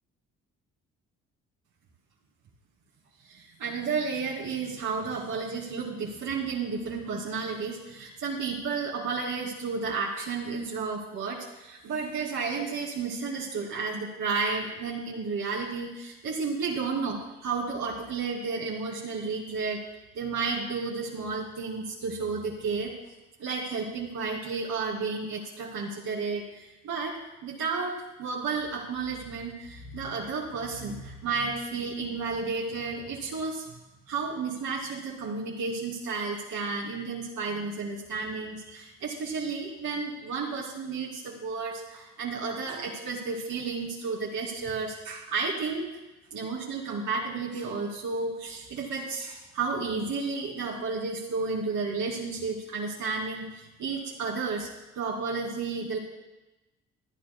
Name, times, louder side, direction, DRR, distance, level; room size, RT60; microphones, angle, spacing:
voice 1, 3.2-19.8 20.1-22.9 23.4-33.7 34.1-45.9 46.3-54.7 55.0-56.0, right 4 dB, 75° right, -3 dB, 2.5 m, -32 dB
26.0 x 9.0 x 2.3 m, 1.0 s
cardioid pair, 90°, 30 cm